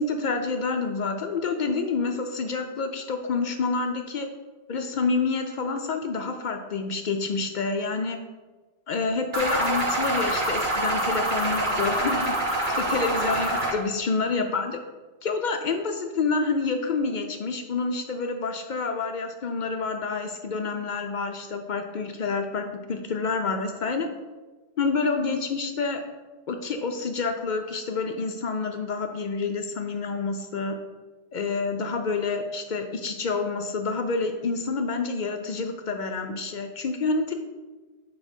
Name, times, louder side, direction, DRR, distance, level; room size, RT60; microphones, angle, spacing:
voice 1, 0.0-4.3 4.7-8.2 8.9-12.4 12.8-14.7 15.2-24.1 24.8-26.0 26.5-30.8 31.3-37.3, left 4 dB, 55° left, 5 dB, 0.5 m, -28 dB
sound 1, 9.3-13.7, right 1 dB, 45° right, 1.2 m, -26 dB
7.1 x 3.2 x 5.3 m, 1.3 s
omnidirectional pair, 1.2 m